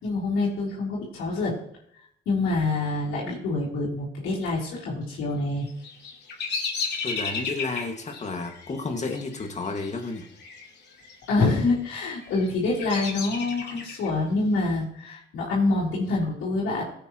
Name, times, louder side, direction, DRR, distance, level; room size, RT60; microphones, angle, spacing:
voice 1, 0.0-1.5 2.3-5.7 11.3-16.8, left 3 dB, 85° left, -9 dB, 3.7 m, -26 dB
Bird vocalization bird call bird song, 5.6-10.7 10.9-11.5 12.1-14.1, left 5 dB, 60° left, 2.7 m, -33 dB
voice 2, 7.0-10.3, left 3 dB, 35° left, 4 dB, 2.0 m, -32 dB
16.5 x 8.4 x 3.1 m, 0.71 s
cardioid pair, 90°, 20 cm